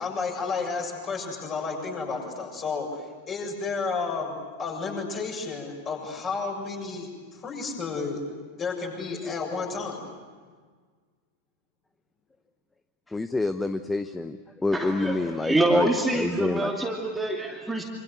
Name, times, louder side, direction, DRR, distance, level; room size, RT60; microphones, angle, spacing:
voice 1, 0.0-4.3 4.6-8.2 8.6-10.1, left 4 dB, 25° left, 1 dB, 7.4 m, -32 dB
voice 2, 13.1-16.7, left 2 dB, 10° left, 11 dB, 0.8 m, -28 dB
voice 3, 14.7-17.8, right 2 dB, 5° right, 0 dB, 2.6 m, -26 dB
26.5 x 26.5 x 8.2 m, 1.6 s
figure-of-eight pair, 90°, 0 cm